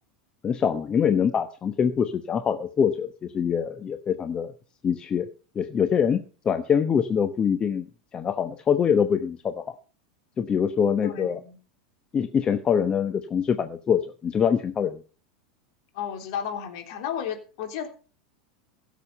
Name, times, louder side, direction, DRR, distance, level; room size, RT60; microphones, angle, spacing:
voice 1, 0.4-4.5 4.8-5.3 5.5-9.6 10.4-11.4 12.1-15.0, left 7 dB, 25° left, 9 dB, 1.0 m, -24 dB
voice 2, 11.0-11.5 15.9-17.9, left 8 dB, 55° left, 5 dB, 3.3 m, -33 dB
16.5 x 7.2 x 5.7 m, 0.37 s
figure-of-eight pair, 85°, 3 cm